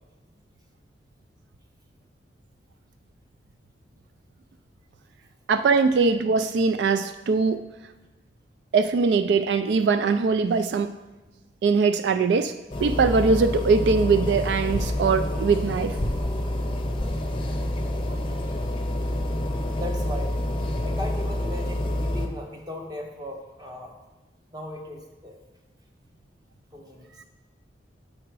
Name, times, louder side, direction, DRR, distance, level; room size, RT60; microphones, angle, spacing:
voice 1, 5.5-7.6 8.7-10.9 11.6-12.5 12.8-16.0, right 4 dB, 75° right, 10 dB, 0.3 m, -21 dB
sound 1, 12.7-22.3, left 1 dB, 30° left, 0.6 m, -27 dB
voice 2, 17.9-18.6 19.6-20.4 20.8-23.9 24.5-25.4 26.7-27.1, left 1 dB, 20° right, 1 dB, 0.9 m, -38 dB
7.4 x 5.0 x 4.6 m, 1.1 s
head